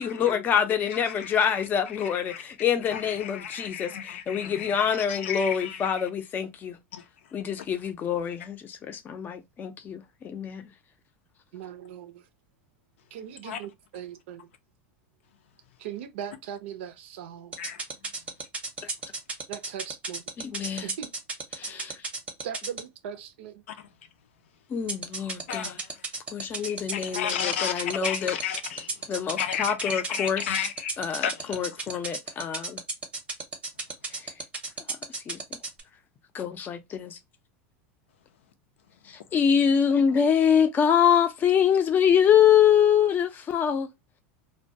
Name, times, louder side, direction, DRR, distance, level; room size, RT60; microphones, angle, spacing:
voice 1, 0.0-6.8 7.3-10.6 18.8-18.9 20.4-20.9 21.6-21.9 24.7-25.8 26.3-28.4 29.1-30.5 31.0-32.8 34.1-34.2 35.3-35.4 36.3-37.2 39.1-43.9, left 8 dB, 30° left, 0.5 m, -25 dB
voice 2, 0.8-1.6 1.9-2.4 2.9-6.1 6.9-7.0 7.6-7.7 13.4-13.6 17.6-17.8 23.7-23.8 25.5-25.7 26.6-28.9 29.4-31.6, left 9 dB, 85° left, 0.5 m, -33 dB
voice 3, 11.5-12.3 13.1-14.5 15.8-17.6 19.5-20.2 20.8-21.1 21.7-22.0 22.4-23.6, right 9 dB, 75° right, 0.5 m, -39 dB
sound 1, 17.5-22.8 24.9-35.8, right 3 dB, 20° right, 0.6 m, -32 dB
2.2 x 2.2 x 2.6 m
supercardioid pair, 125°, 7 cm